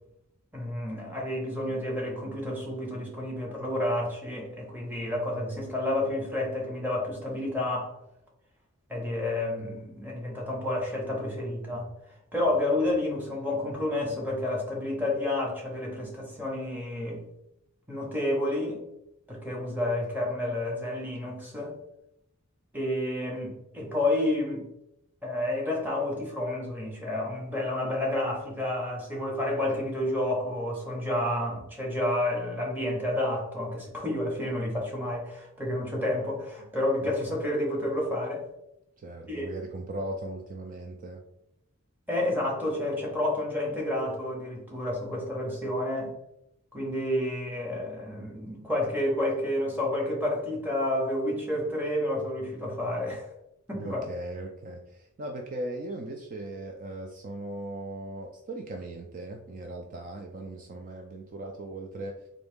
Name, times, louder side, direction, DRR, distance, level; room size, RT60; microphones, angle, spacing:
voice 1, 0.5-7.9 8.9-11.9 12.3-17.2 17.9-18.8 19.3-21.7 22.7-24.7 25.2-38.4 39.3-39.5 42.1-46.1 46.7-53.3 53.7-54.0, left 1 dB, 10° right, -2 dB, 1.0 m, -30 dB
voice 2, 39.0-41.2 53.8-62.1, right 1 dB, 40° right, 1 dB, 0.4 m, -38 dB
3.8 x 2.6 x 3.5 m, 0.81 s
head